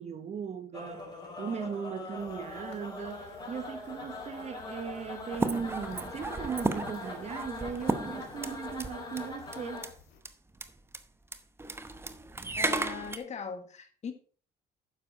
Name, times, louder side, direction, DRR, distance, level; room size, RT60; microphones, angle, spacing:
voice 1, 0.0-9.9, right 6 dB, 40° right, 1.1 m, -38 dB
sound 1, 0.7-9.9, left 3 dB, 25° left, 4.5 m, -42 dB
sound 2, 2.2-10.2, left 8 dB, 85° left, 2.2 m, -56 dB
sound 3, 5.3-8.9 9.2-9.3 9.5-9.9 10.2-10.3 10.5-10.7 10.9-11.0 11.3-13.2, right 2 dB, 15° right, 0.9 m, -34 dB
voice 2, 12.6-14.1, left 6 dB, 40° left, 1.6 m, -39 dB
9.8 x 7.0 x 4.1 m
cardioid pair, 110°, 17 cm